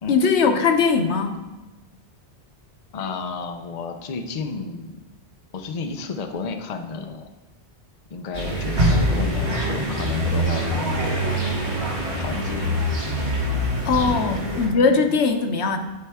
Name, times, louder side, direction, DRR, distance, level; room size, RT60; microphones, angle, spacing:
voice 1, 0.1-1.4 13.8-15.8, left 5 dB, 90° left, 6 dB, 1.1 m, -20 dB
voice 2, 2.9-5.0 5.5-7.3 8.1-11.3 12.2-12.7 14.3-14.4 14.9-15.2, left 4 dB, 45° left, 5 dB, 0.6 m, -32 dB
sound 1, 8.3-14.7, equal, 85° right, 2.0 m, -24 dB
12.5 x 4.4 x 3.5 m, 1.1 s
omnidirectional pair, 1.1 m